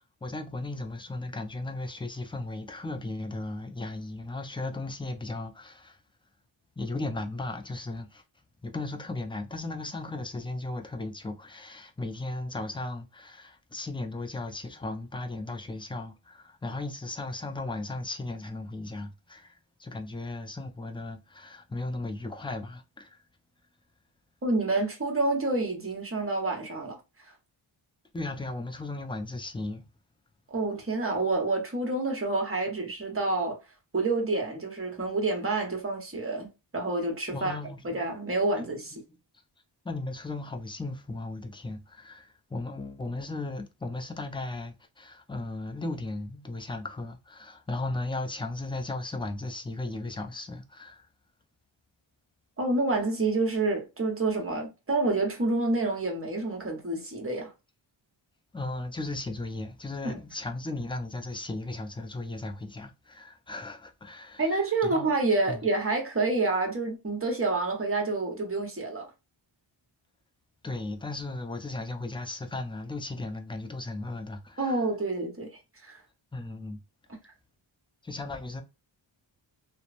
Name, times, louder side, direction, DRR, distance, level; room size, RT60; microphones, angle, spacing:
voice 1, 0.2-6.0 6.8-8.2 8.6-23.2 28.1-29.9 37.3-38.1 38.9-39.1 39.8-51.1 58.5-65.1 65.5-65.6 70.6-74.8 76.3-76.8 78.0-78.6, left 2 dB, 10° left, 0.4 m, -36 dB
voice 2, 24.4-27.0 30.5-33.6 33.9-37.6 37.8-39.0 52.6-57.5 60.0-60.2 64.4-69.1 74.6-75.5 75.8-76.0, right 2 dB, 30° right, 1.0 m, -28 dB
2.9 x 2.1 x 2.4 m
wide cardioid pair, 115°, 46 cm